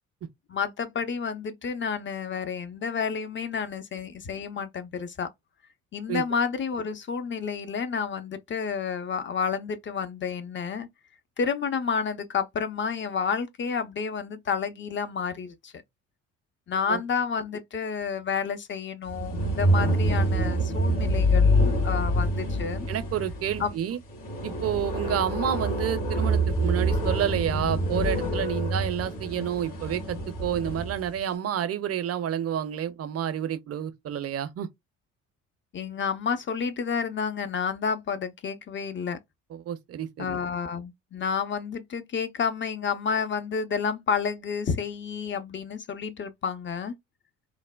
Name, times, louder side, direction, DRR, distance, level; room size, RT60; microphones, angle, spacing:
voice 1, 0.5-5.3 5.9-10.9 11.4-15.7 16.7-22.9 23.6-23.7 35.7-39.2 40.2-46.9, left 6 dB, 30° left, 0.6 m, -30 dB
sound 1, 19.1-31.1, equal, 55° left, 1.7 m, -26 dB
voice 2, 22.9-24.0 24.4-34.7 39.5-40.4, right 9 dB, 40° right, 0.6 m, -29 dB
3.2 x 2.0 x 2.2 m
hypercardioid pair, 55°, 38 cm